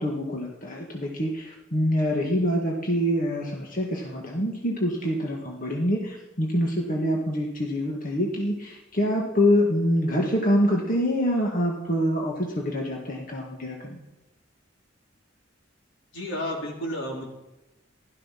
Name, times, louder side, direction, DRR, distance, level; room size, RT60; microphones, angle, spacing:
voice 1, 0.0-14.0, equal, 45° left, -1 dB, 2.0 m, -25 dB
voice 2, 16.1-17.3, equal, 80° left, -1 dB, 4.3 m, -31 dB
16.0 x 13.0 x 5.9 m, 0.99 s
head